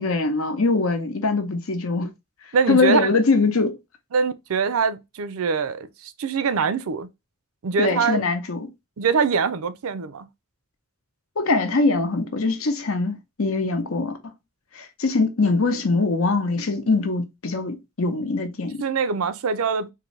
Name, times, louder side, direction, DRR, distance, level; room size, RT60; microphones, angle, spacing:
voice 1, 0.0-2.1 2.7-3.8 7.8-8.7 11.4-14.2 14.7-18.8, left 3 dB, 75° left, 0.8 m, -22 dB
voice 2, 2.5-3.1 4.1-7.1 7.6-8.2 9.0-10.3 18.8-19.9, right 5 dB, 80° right, 0.5 m, -23 dB
3.7 x 2.6 x 3.1 m
head